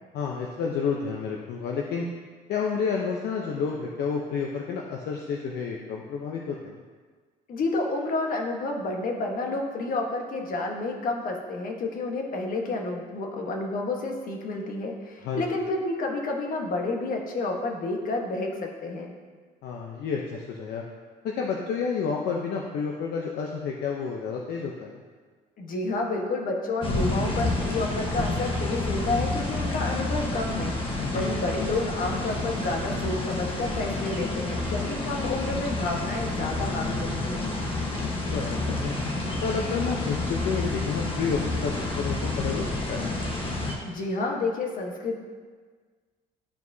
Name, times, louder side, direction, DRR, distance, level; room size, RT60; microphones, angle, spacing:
voice 1, 0.1-2.1 2.5-6.8 15.2-15.4 19.6-20.8 21.2-25.0 31.0-31.3 38.0-39.0 39.4-43.1, left 5 dB, 70° left, -1 dB, 0.7 m, -30 dB
voice 2, 7.5-19.1 25.6-37.5 43.8-45.2, left 2 dB, 55° left, 2 dB, 1.2 m, -30 dB
sound 1, 26.8-43.8, left 2 dB, 30° left, 1.2 m, -29 dB
11.5 x 4.7 x 2.7 m, 1.5 s
cardioid pair, 110°, 17 cm